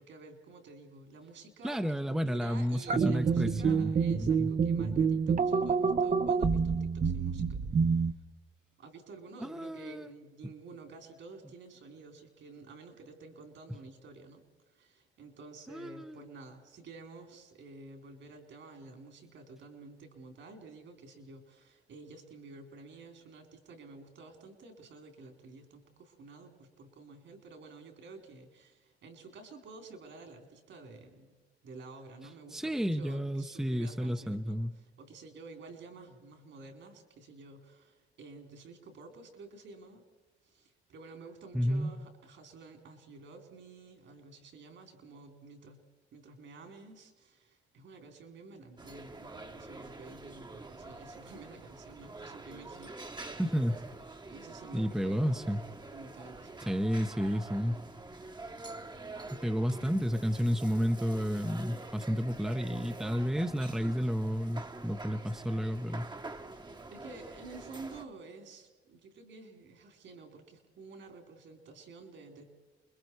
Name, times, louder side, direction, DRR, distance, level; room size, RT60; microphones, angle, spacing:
voice 1, 0.0-8.1 8.8-31.4 31.6-40.0 40.4-45.8 46.1-53.4 54.3-55.4 55.9-56.6 66.9-72.4, right 3 dB, 70° right, 4 dB, 4.0 m, -51 dB
voice 2, 1.6-3.9 4.2-4.5 9.4-10.1 15.7-16.2 32.5-34.7 41.5-41.9 53.4-53.8 54.7-55.6 56.7-57.8 59.3-66.1, equal, ahead, 7 dB, 0.8 m, -31 dB
sound 1, 2.9-8.1, right 5 dB, 40° right, 0.8 m, -27 dB
sound 2, 48.8-68.0, right 2 dB, 20° right, 1.2 m, -46 dB
28.5 x 22.0 x 4.7 m, 1.3 s
cardioid pair, 90°, 20 cm